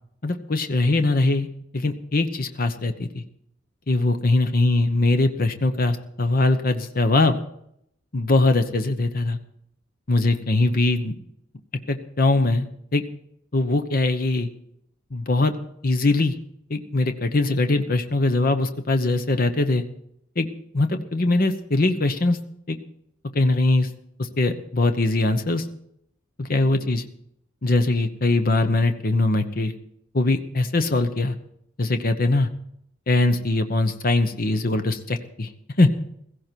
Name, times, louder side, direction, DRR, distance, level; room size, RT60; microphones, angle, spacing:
voice 1, 0.2-1.5 1.7-3.2 3.9-7.4 8.1-9.4 10.1-11.2 11.9-12.7 12.9-13.0 13.5-14.5 15.1-15.5 15.8-16.3 16.7-19.8 20.4-20.5 20.7-22.4 22.7-22.8 23.3-23.9 24.4-25.7 26.4-27.0 27.6-29.7 30.1-31.3 31.8-32.5 33.1-35.5 35.8-35.9, left 2 dB, 50° left, 8 dB, 1.0 m, -21 dB
16.0 x 16.0 x 4.6 m, 0.74 s
head